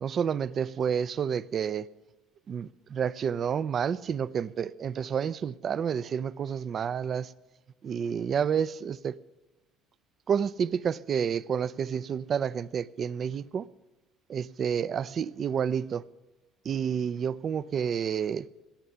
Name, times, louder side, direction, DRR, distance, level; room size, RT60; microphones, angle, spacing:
voice 1, 0.0-1.9 2.5-7.3 7.8-9.2 10.3-13.7 14.3-16.0 16.6-18.5, right 7 dB, 45° right, 0.5 m, -29 dB
17.5 x 6.8 x 9.8 m
supercardioid pair, 105°, 0 cm